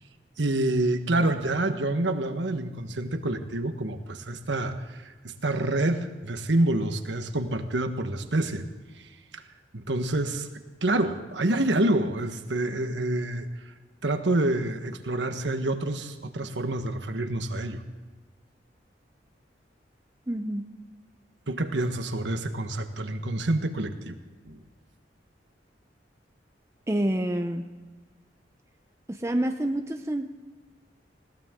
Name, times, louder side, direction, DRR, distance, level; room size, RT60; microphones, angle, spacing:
voice 1, 0.4-8.6 9.3-9.4 9.7-10.5 10.8-13.5 14.0-17.8 21.5-24.2 24.5-24.6, right 1 dB, 80° right, 8 dB, 1.4 m, -27 dB
voice 2, 20.3-20.6 26.9-27.6 29.1-30.3, right 1 dB, 15° right, 5 dB, 0.7 m, -27 dB
20.5 x 18.0 x 3.8 m, 1.4 s
head